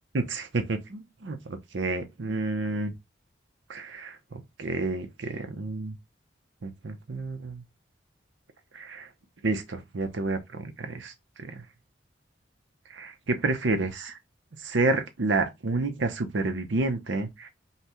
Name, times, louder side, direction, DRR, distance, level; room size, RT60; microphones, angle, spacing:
voice 1, 0.1-2.9 3.7-4.2 4.6-6.0 6.6-7.6 8.7-9.1 9.4-11.1 11.4-11.6 12.9-14.2 14.6-17.5, right 3 dB, 80° right, 0.7 m, -29 dB
5.6 x 2.2 x 3.0 m
head